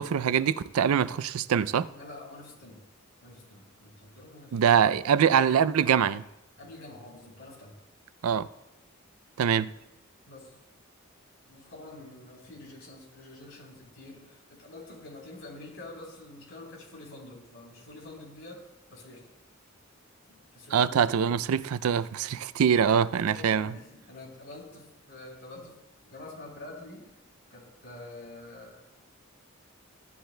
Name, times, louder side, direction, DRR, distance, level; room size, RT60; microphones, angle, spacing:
voice 1, 0.0-1.9 4.5-6.2 8.2-8.5 9.4-9.7 20.7-23.7, right 8 dB, 90° right, 0.4 m, -24 dB
voice 2, 1.9-2.8 3.2-4.6 6.6-7.8 10.3-10.5 11.5-18.6 18.9-19.3 20.3-21.4 23.1-27.2 27.5-28.8, left 2 dB, 65° left, 3.7 m, -47 dB
16.0 x 10.5 x 2.2 m
head